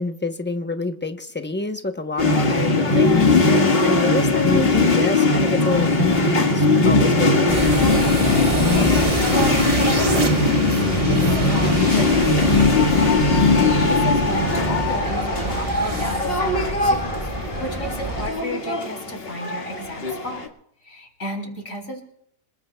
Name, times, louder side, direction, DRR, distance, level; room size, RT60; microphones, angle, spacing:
voice 1, 0.0-7.9 13.6-13.9, left 3 dB, 10° left, 6 dB, 0.6 m, -28 dB
sound 1, 2.2-20.5, left 3 dB, 45° left, 1.8 m, -19 dB
sound 2, 7.5-18.3, right 1 dB, 25° right, 1.2 m, -26 dB
voice 2, 8.7-10.8 11.1-13.1 13.8-17.2 17.6-20.4 20.8-22.0, equal, 70° left, 1 dB, 3.7 m, -32 dB
Piano, 10.1-16.3, right 2 dB, 45° right, 1.7 m, -37 dB
26.5 x 21.0 x 2.3 m, 0.71 s
omnidirectional pair, 1.4 m